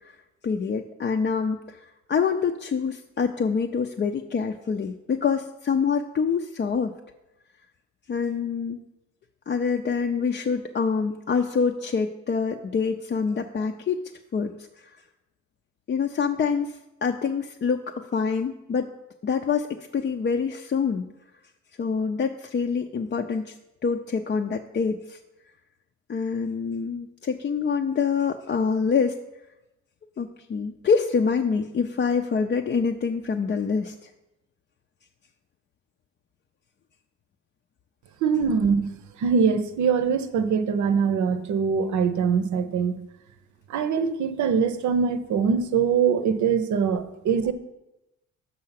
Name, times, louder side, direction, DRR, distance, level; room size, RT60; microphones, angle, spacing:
voice 1, 0.4-1.8 2.1-6.9 8.1-8.8 9.5-14.0 14.3-14.5 14.8-14.9 15.9-18.9 19.2-19.7 19.9-21.1 21.8-23.5 23.8-25.2 26.1-29.2 30.2-34.1, left 5 dB, 35° left, 4 dB, 0.5 m, -26 dB
voice 2, 38.2-38.9 39.2-43.0 43.7-47.5, right 6 dB, 70° right, 10 dB, 0.8 m, -23 dB
6.4 x 5.6 x 5.8 m, 0.94 s
cardioid pair, 90°, 30 cm